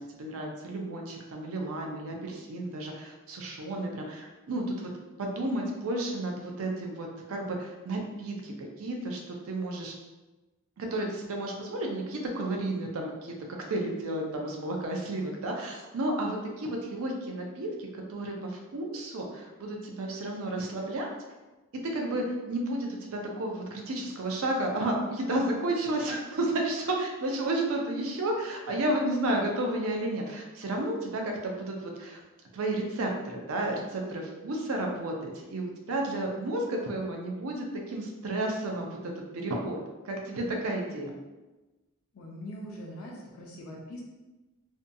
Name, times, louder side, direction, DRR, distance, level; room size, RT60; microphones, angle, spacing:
voice 1, 0.0-4.9 5.2-9.9 10.8-13.4 13.7-21.1 21.8-32.2 32.5-39.8 40.0-41.1, right 1 dB, 75° right, 1 dB, 0.5 m, -32 dB
voice 2, 42.1-44.0, equal, 80° left, -2 dB, 0.5 m, -42 dB
2.6 x 2.2 x 2.6 m, 1.1 s
head